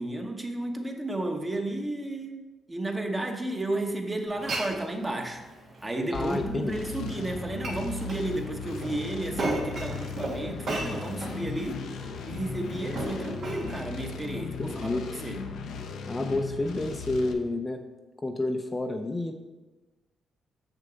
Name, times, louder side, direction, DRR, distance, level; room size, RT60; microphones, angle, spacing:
voice 1, 0.0-2.4 2.7-5.4 5.8-11.8 12.3-15.4, right 1 dB, 20° right, 3 dB, 1.1 m, -33 dB
Glass, 4.3-14.2, right 2 dB, 60° right, 1.5 m, -37 dB
sound 1, 6.1-17.3, left 5 dB, 85° left, 0.7 m, -37 dB
voice 2, 6.1-6.8 14.6-15.1 16.1-17.8 18.2-19.3, left 2 dB, 25° left, 5 dB, 0.5 m, -29 dB
6.6 x 6.3 x 3.9 m, 1.2 s
cardioid pair, 70°, 0 cm